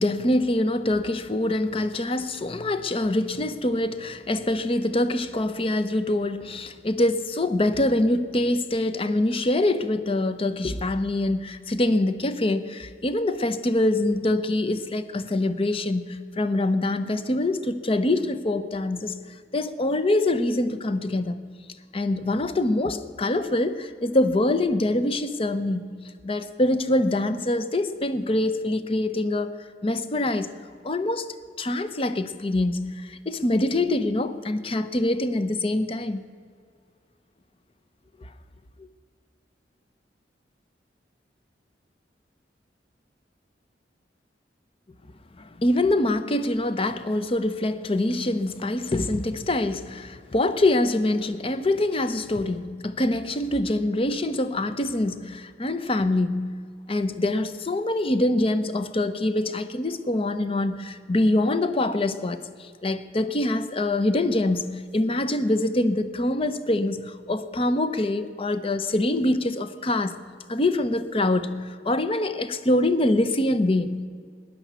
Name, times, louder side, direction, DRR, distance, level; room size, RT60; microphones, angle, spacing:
voice 1, 0.0-19.2 19.5-21.5 21.9-29.5 29.8-30.5 30.8-31.3 31.6-36.3 38.8-38.9 45.4-70.2 70.5-74.1, left 1 dB, 30° left, 0.7 m, -25 dB
13.5 x 10.5 x 8.1 m
head